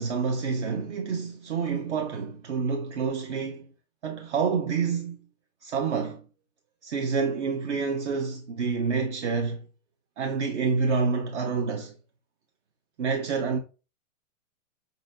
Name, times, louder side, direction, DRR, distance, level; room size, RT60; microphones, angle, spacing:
voice 1, 0.0-3.7 4.0-5.2 5.6-6.2 6.8-9.6 10.2-11.9 13.0-13.6, right 5 dB, 55° right, 0.7 m, -28 dB
5.0 x 4.0 x 2.5 m
supercardioid pair, 170°, 41 cm